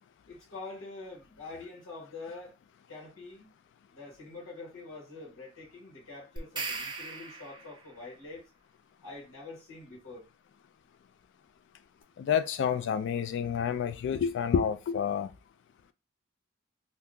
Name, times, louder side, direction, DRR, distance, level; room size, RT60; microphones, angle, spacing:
voice 1, 0.3-2.5 2.9-3.5 3.9-8.4 9.0-10.3, left 3 dB, 85° left, 1.4 m, -45 dB
sound 1, 6.4-7.9, right 4 dB, 20° right, 0.5 m, -38 dB
voice 2, 12.2-15.3, left 7 dB, 60° left, 0.3 m, -29 dB
2.7 x 2.3 x 3.6 m
head